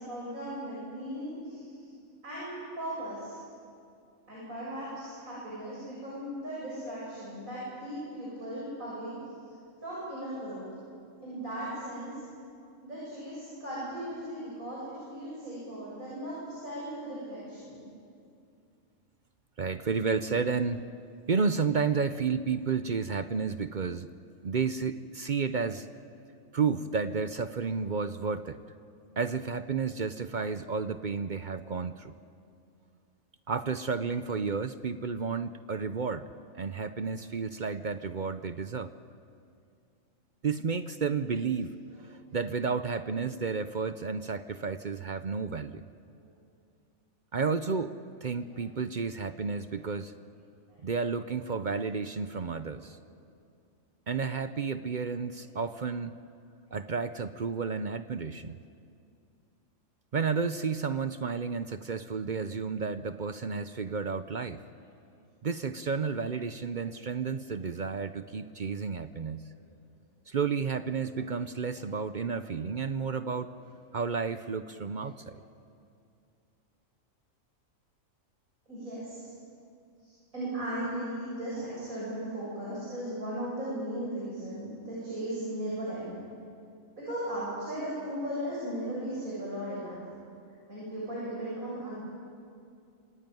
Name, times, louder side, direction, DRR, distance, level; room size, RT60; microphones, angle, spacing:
voice 1, 0.0-1.9 2.2-3.4 4.3-9.2 9.8-10.7 11.2-12.2 12.8-17.8 46.2-46.3 48.5-48.6 49.8-49.9 50.7-50.8 52.8-52.9 67.1-67.2 75.3-75.4 78.7-79.3 80.0-86.1 87.0-90.0 90.7-91.9, right 1 dB, 85° right, -7 dB, 8.1 m, -37 dB
voice 2, 19.6-20.8 21.3-24.1 24.4-25.9 26.5-28.6 29.2-32.1 33.5-36.3 36.5-38.9 40.4-41.7 42.0-45.8 47.3-47.9 48.2-50.1 50.8-53.0 54.1-56.2 56.7-58.6 60.1-64.6 65.4-69.5 70.3-73.5 73.9-75.4, right 5 dB, 45° right, 11 dB, 0.7 m, -31 dB
27.5 x 17.5 x 9.3 m, 2.4 s
omnidirectional pair, 1.4 m